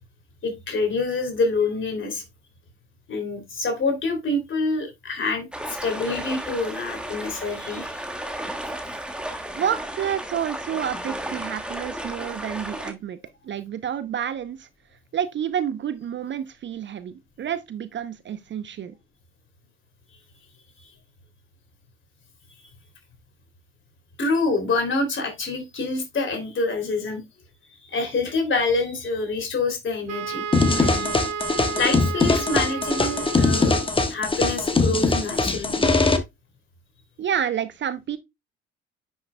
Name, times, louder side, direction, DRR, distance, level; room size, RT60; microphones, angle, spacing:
voice 1, 0.4-2.2 3.1-5.5 5.8-8.1 20.8-20.9 24.2-27.2 27.7-30.4 30.7-31.2 31.7-35.8, left 3 dB, 40° left, 2.9 m, -26 dB
sound 1, 5.5-12.9, right 1 dB, 5° right, 1.5 m, -34 dB
voice 2, 9.5-13.2 13.4-14.7 15.1-18.9 37.2-38.2, right 9 dB, 35° right, 0.7 m, -29 dB
Wind instrument woodwind instrument, 30.1-34.1, right 6 dB, 50° right, 1.2 m, -32 dB
sound 2, 30.5-36.2, left 3 dB, 15° left, 1.2 m, -21 dB
9.8 x 6.2 x 2.2 m
figure-of-eight pair, 50°, 31 cm